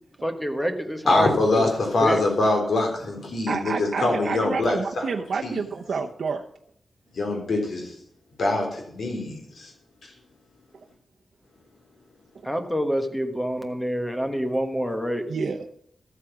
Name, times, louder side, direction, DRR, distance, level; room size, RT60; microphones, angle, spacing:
voice 1, 0.2-1.3 1.5-1.6 2.0-2.2 12.4-15.2, equal, 5° left, 6 dB, 1.4 m, -27 dB
voice 2, 1.1-5.1 5.4-5.6 7.1-8.0 8.4-9.7, left 2 dB, 75° left, 2 dB, 3.8 m, -24 dB
voice 3, 3.5-6.4 15.3-15.7, right 5 dB, 80° right, 1 dB, 0.8 m, -29 dB
13.0 x 8.5 x 6.1 m, 0.67 s
wide cardioid pair, 170°, 0 cm